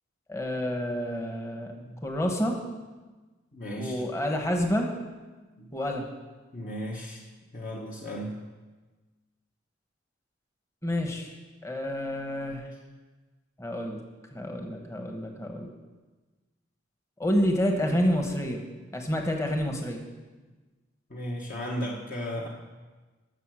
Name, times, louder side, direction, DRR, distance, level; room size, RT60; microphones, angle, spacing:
voice 1, 0.3-1.7 2.0-2.5 3.8-4.9 5.7-6.1 10.8-11.3 11.6-12.7 13.6-14.0 14.3-15.7 17.2-18.6 18.9-20.0, equal, 15° left, 2 dB, 1.1 m, -28 dB
voice 2, 1.7-2.0 3.5-4.0 5.6-5.7 6.5-7.2 7.5-8.4 21.1-22.5, equal, 45° left, -2 dB, 1.2 m, -35 dB
14.0 x 6.6 x 6.3 m, 1.3 s
head